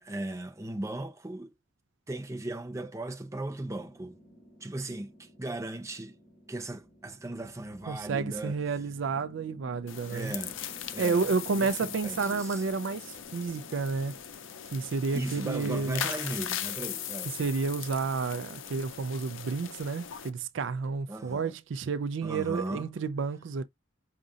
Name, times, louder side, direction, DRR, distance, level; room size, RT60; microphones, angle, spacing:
voice 1, 0.0-1.5 2.1-4.2 4.6-6.2 6.5-8.6 10.1-10.6 10.9-12.6 15.1-17.3 21.1-21.5 22.2-22.9, right 1 dB, 15° right, 0.7 m, -37 dB
sound 1, 3.6-15.8, right 1 dB, 35° left, 1.9 m, -55 dB
voice 2, 7.9-10.3 11.0-14.2 14.7-16.0 17.4-23.6, right 4 dB, 70° right, 0.4 m, -31 dB
sound 2, 9.9-20.3, left 9 dB, 75° left, 0.6 m, -39 dB
4.9 x 2.5 x 2.6 m
head